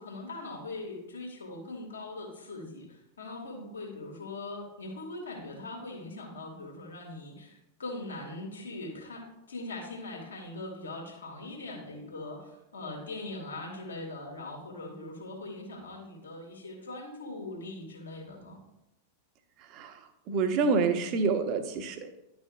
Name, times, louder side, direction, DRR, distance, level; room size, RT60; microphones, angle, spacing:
voice 1, 0.0-18.6, left 2 dB, 70° left, 0 dB, 2.1 m, -41 dB
voice 2, 20.3-22.2, right 4 dB, 40° right, 8 dB, 0.9 m, -27 dB
11.0 x 5.9 x 2.4 m, 0.89 s
figure-of-eight pair, 90°, 0 cm